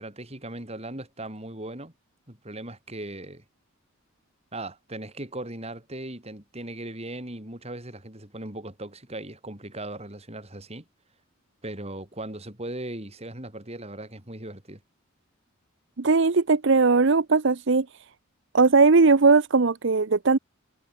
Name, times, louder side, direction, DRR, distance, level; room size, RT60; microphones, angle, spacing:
voice 1, 0.0-1.9 2.3-3.4 4.5-10.8 11.6-14.8, right 1 dB, 30° right, 4.6 m, -38 dB
voice 2, 16.0-17.9 18.5-20.4, right 4 dB, 60° right, 0.8 m, -19 dB
head